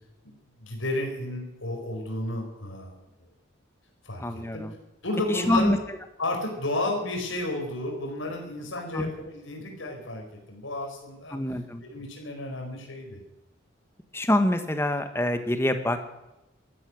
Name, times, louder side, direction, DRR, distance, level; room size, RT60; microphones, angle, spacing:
voice 1, 0.2-3.3 4.0-4.6 5.0-5.8 6.2-11.3 11.9-13.2, left 2 dB, 75° left, 1 dB, 4.8 m, -32 dB
voice 2, 4.2-4.7 5.3-5.8 8.9-9.1 11.3-11.8 14.1-16.1, left 1 dB, 10° left, 8 dB, 1.5 m, -25 dB
14.0 x 13.0 x 7.9 m, 0.93 s
head